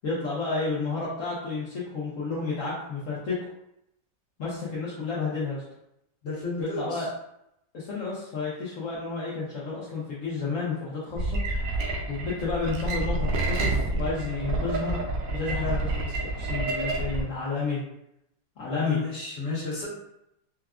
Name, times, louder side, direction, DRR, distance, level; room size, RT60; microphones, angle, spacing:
voice 1, 0.0-3.5 4.4-5.6 6.6-7.1 7.7-11.4 12.1-17.8 18.6-19.0, left 4 dB, 55° left, -8 dB, 0.9 m, -31 dB
voice 2, 6.2-7.1 18.7-19.9, left 3 dB, 40° left, -7 dB, 1.6 m, -32 dB
sound 1, 11.1-17.2, right 2 dB, 70° right, 1.1 m, -28 dB
4.7 x 2.2 x 2.4 m, 0.80 s
omnidirectional pair, 2.0 m